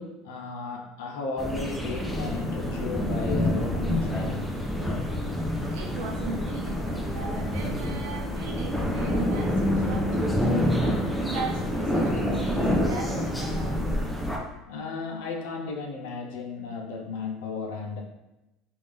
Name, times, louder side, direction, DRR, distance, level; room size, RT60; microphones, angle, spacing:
voice 1, 0.0-4.5 14.7-18.0, left 4 dB, 85° left, 2 dB, 0.6 m, -34 dB
sound 1, 1.4-14.4, equal, 5° left, 0.4 m, -27 dB
voice 2, 5.7-10.7 11.0-13.9, right 3 dB, 75° right, -1 dB, 0.7 m, -38 dB
3.3 x 2.6 x 3.6 m, 0.97 s
cardioid pair, 160°, 0 cm